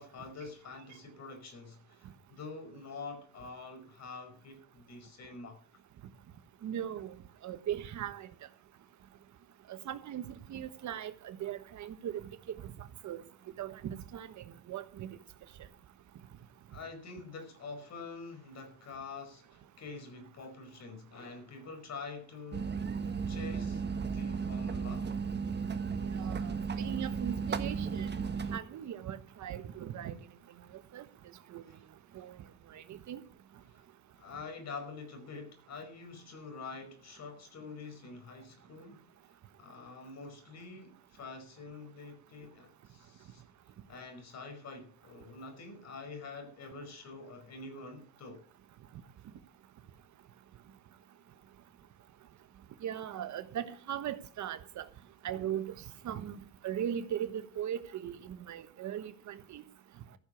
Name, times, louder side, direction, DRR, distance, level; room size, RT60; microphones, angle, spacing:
voice 1, 0.0-5.6 16.7-22.7 23.3-25.1 33.7-33.8 34.2-39.1 39.6-43.4 43.9-48.4, left 4 dB, 60° left, 5.3 m, -46 dB
voice 2, 6.6-7.2 7.4-8.3 9.7-12.2 12.5-13.2 13.6-15.2 26.2-28.1 28.5-30.2 30.9-31.1 31.5-31.6 32.1-32.4 32.7-33.2 52.8-54.8 55.2-55.7 56.0-56.4 56.6-59.6, right 10 dB, 70° right, 1.3 m, -39 dB
sound 1, 22.5-28.6, right 5 dB, 35° right, 1.3 m, -35 dB
14.5 x 6.8 x 7.2 m
cardioid pair, 90°, 30 cm